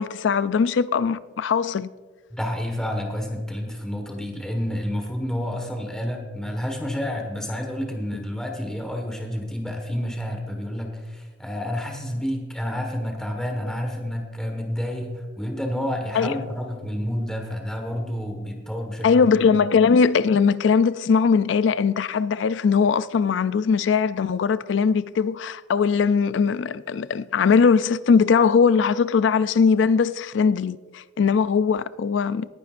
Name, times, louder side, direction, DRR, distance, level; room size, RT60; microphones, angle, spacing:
voice 1, 0.0-1.9 16.1-16.4 19.0-32.5, left 5 dB, 70° left, 0.4 m, -20 dB
voice 2, 2.3-19.3 19.5-19.6, equal, 5° left, 1.5 m, -29 dB
20.0 x 9.6 x 2.5 m
head